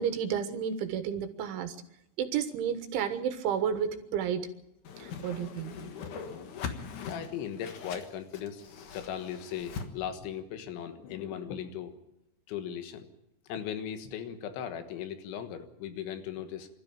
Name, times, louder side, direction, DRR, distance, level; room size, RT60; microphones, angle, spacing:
voice 1, 0.0-1.8 2.2-4.5 5.0-5.7, right 8 dB, 90° right, 9 dB, 3.9 m, -31 dB
Whoosh swoosh swish, 4.8-9.9, left 6 dB, 60° left, 2.3 m, -41 dB
voice 2, 4.9-5.6 6.0-6.6 6.9-8.6 8.9-11.9 12.5-13.1 13.5-16.7, left 9 dB, 80° left, 8 dB, 3.8 m, -38 dB
26.0 x 13.0 x 8.7 m, 0.85 s
omnidirectional pair, 5.3 m